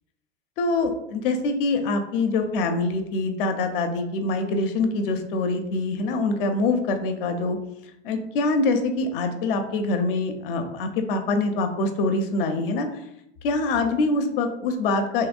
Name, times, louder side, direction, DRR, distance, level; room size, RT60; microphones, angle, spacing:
voice 1, 0.6-7.6 8.0-12.9 13.4-15.3, left 3 dB, 50° left, 6 dB, 0.5 m, -24 dB
3.0 x 2.8 x 2.4 m, 0.80 s
figure-of-eight pair, 85°, 35 cm